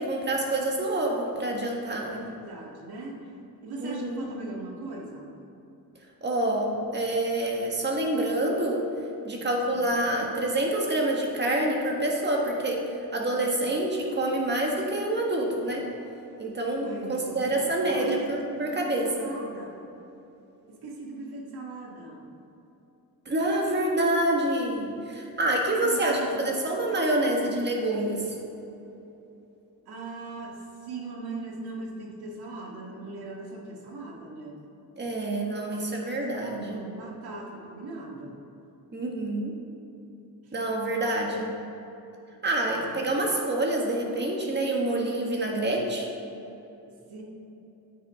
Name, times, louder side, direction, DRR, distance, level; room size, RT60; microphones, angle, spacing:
voice 1, 0.0-2.1 3.8-4.2 6.2-8.8 9.2-12.8 13.1-15.8 16.4-19.3 23.2-28.3 35.0-36.8 38.9-39.5 40.5-41.5 42.4-46.1, right 1 dB, 30° right, -1 dB, 1.5 m, -27 dB
voice 2, 2.1-3.2 3.6-5.3 9.7-10.0 16.8-18.9 19.2-19.7 20.7-22.3 25.8-26.5 29.9-34.6 35.7-35.9 36.3-38.4 40.4-40.5 42.6-43.1 47.1-47.2, right 3 dB, 85° right, -1 dB, 1.8 m, -40 dB
9.4 x 9.2 x 3.7 m, 3.0 s
wide cardioid pair, 140°, 37 cm